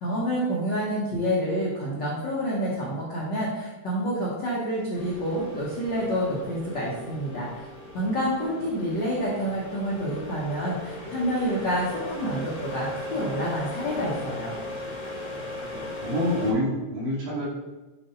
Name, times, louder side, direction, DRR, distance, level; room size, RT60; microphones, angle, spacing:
voice 1, 0.0-7.7 7.9-14.6, equal, 70° left, -7 dB, 1.0 m, -28 dB
sound 1, 4.9-16.5, left 1 dB, 45° left, 1.0 m, -38 dB
voice 2, 15.7-17.5, left 1 dB, 75° right, -8 dB, 3.4 m, -27 dB
8.5 x 4.0 x 4.0 m, 1.1 s
omnidirectional pair, 4.2 m